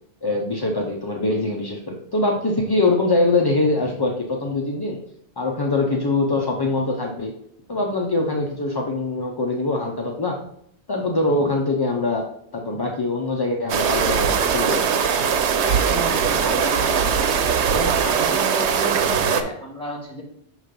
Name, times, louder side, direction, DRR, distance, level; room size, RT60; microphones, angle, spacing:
voice 1, 0.2-5.0 5.4-7.3 7.7-10.4 10.9-12.2 12.5-14.8, left 2 dB, 30° left, 0 dB, 0.5 m, -23 dB
sound 1, 13.7-19.4, right 7 dB, 85° right, 0.9 m, -20 dB
voice 2, 15.6-17.4 17.7-20.2, equal, 5° left, -7 dB, 2.2 m, -31 dB
6.6 x 3.2 x 5.1 m, 0.70 s
omnidirectional pair, 1.1 m